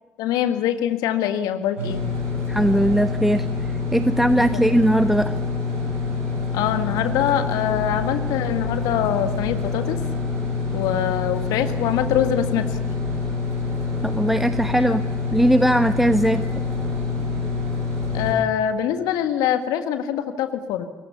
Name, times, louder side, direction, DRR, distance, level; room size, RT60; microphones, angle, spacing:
voice 1, 0.2-2.0 4.5-4.6 6.5-10.0 10.7-12.8 14.8-15.0 18.1-20.9, left 10 dB, 70° left, 9 dB, 1.7 m, -24 dB
sound 1, 1.8-18.3, left 4 dB, 85° right, 7.5 m, -26 dB
voice 2, 2.5-5.4 14.0-15.0 15.3-16.4, equal, 5° right, 10 dB, 1.3 m, -19 dB
29.0 x 22.5 x 7.0 m, 1.1 s
figure-of-eight pair, 40°, 7 cm